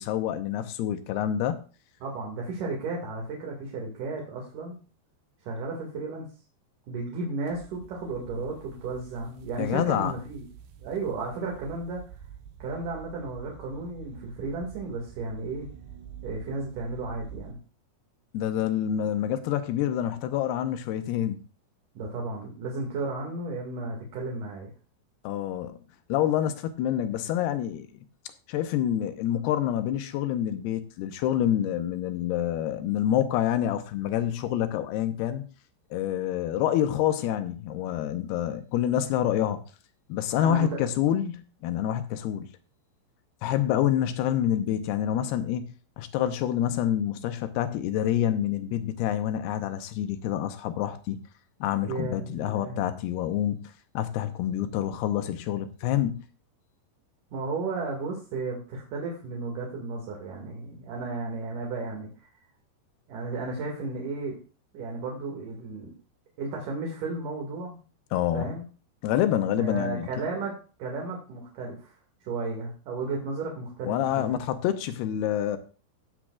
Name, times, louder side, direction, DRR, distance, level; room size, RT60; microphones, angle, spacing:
voice 1, 0.0-1.6 9.6-10.1 18.3-21.4 25.2-25.8 26.1-27.9 28.5-35.4 35.9-39.6 40.1-42.5 43.4-45.7 46.0-51.2 51.6-56.2 68.1-68.5 69.0-70.1 73.8-75.6, left 11 dB, 80° left, 2.5 m, -27 dB
voice 2, 2.0-4.8 5.4-6.3 6.9-10.4 10.8-12.0 12.6-15.7 16.2-17.6 21.9-24.7 40.3-40.9 51.9-52.9 57.3-62.3 63.1-64.4 64.7-65.9 66.4-67.8 68.3-68.6 69.6-70.5 70.8-71.9 72.2-74.4, right 3 dB, 55° right, 3.1 m, -34 dB
sound 1, 7.4-17.5, right 8 dB, 75° right, 2.9 m, -47 dB
16.5 x 7.4 x 2.4 m
omnidirectional pair, 5.0 m